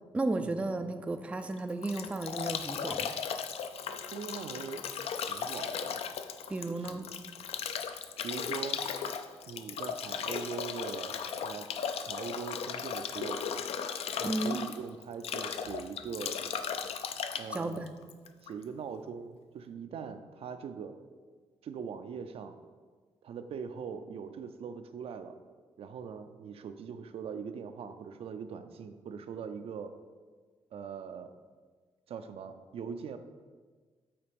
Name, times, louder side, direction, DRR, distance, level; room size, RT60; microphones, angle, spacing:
voice 1, 0.1-3.1 6.5-7.1 14.2-14.6 17.5-18.0, right 2 dB, 10° right, 8 dB, 0.3 m, -33 dB
Bathtub (filling or washing) / Drip / Trickle dribble, 1.4-18.6, left 7 dB, 75° left, 0.5 m, -36 dB
voice 2, 4.1-4.8 5.3-6.0 6.7-7.1 8.2-8.9 9.5-11.7 12.0-13.5 14.2-16.4 17.4-17.8 18.4-21.0 21.6-22.5 23.2-25.4 25.8-29.9 30.7-31.3 32.1-33.2, right 6 dB, 70° right, 8 dB, 0.5 m, -41 dB
8.7 x 4.1 x 5.2 m, 1.5 s
wide cardioid pair, 165°, 10 cm